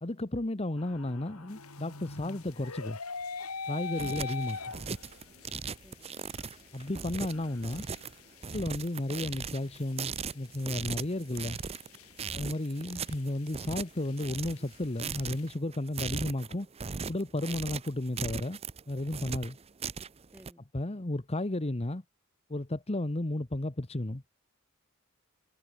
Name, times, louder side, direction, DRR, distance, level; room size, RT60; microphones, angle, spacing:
voice 1, 0.0-3.0 3.7-4.6 6.7-7.8 8.5-11.6 12.3-16.7 17.1-18.6 18.9-19.6 20.7-22.0 22.5-24.2, left 1 dB, 30° left, 1.1 m, -33 dB
sound 1, 0.8-5.4 5.8-5.9 6.4-6.5 6.8-8.1, left 4 dB, 90° left, 4.5 m, -40 dB
sound 2, 1.5-15.5, left 11 dB, 70° left, 5.5 m, -59 dB
sound 3, 3.7-20.5, right 5 dB, 25° right, 0.6 m, -39 dB
voice 2, 5.2-6.1 8.4-8.6 12.2-12.5 20.3-20.7, equal, 5° right, 7.9 m, -59 dB
head